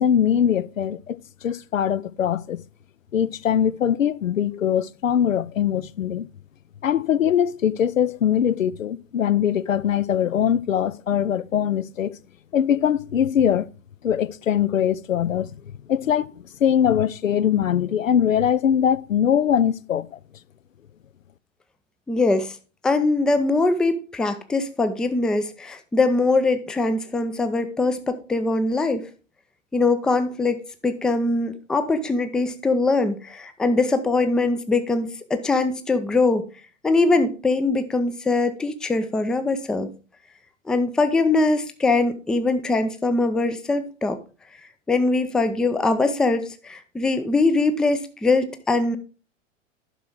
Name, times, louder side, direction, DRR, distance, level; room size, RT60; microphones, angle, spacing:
voice 1, 0.0-2.6 3.1-6.3 6.8-12.2 12.5-13.7 14.0-15.6 15.9-20.2, left 9 dB, 90° left, 0.5 m, -22 dB
voice 2, 22.1-22.6 22.8-29.1 29.7-36.4 36.8-39.9 40.7-44.2 44.9-49.0, left 3 dB, ahead, 0.4 m, -22 dB
11.0 x 5.9 x 3.7 m
figure-of-eight pair, 100°, 38 cm